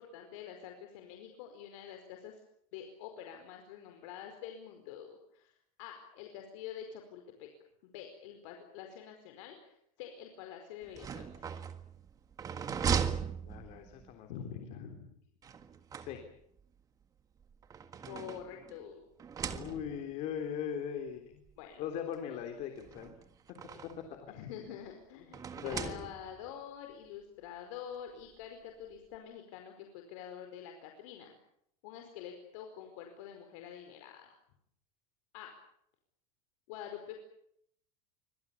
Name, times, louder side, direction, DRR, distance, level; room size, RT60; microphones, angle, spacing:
voice 1, 0.0-2.4 2.7-5.5 5.8-7.5 7.8-11.5 14.3-15.1 18.1-19.1 21.6-21.8 23.7-23.8 24.3-31.3 31.8-34.3 35.3-35.5 36.7-37.2, left 9 dB, 65° left, 4 dB, 4.9 m, -47 dB
sound 1, 10.8-14.1 15.4-16.6 17.4-18.8 19.2-20.1 21.1-21.2 21.5-21.6 22.8-24.1 25.3-26.5, right 7 dB, 20° right, 1.7 m, -38 dB
voice 2, 13.4-14.3 16.0-16.2 19.4-21.4 21.8-23.1 23.8-24.3 25.5-26.1, left 8 dB, 40° left, 5 dB, 3.4 m, -39 dB
27.0 x 25.0 x 7.1 m, 0.73 s
supercardioid pair, 170°, 18 cm